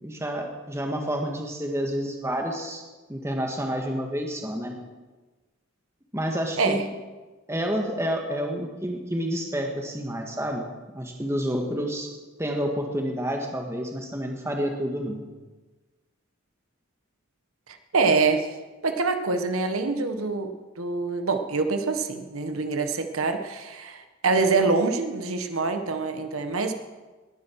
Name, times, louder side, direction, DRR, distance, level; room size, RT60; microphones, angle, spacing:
voice 1, 0.0-2.8 3.1-4.8 6.1-6.8 7.5-10.7 10.9-12.1 12.4-15.2, equal, 15° right, 2 dB, 1.7 m, -29 dB
voice 2, 17.9-18.5 18.8-20.5 20.8-26.7, right 4 dB, 85° right, 7 dB, 1.2 m, -25 dB
20.0 x 11.0 x 4.7 m, 1.3 s
head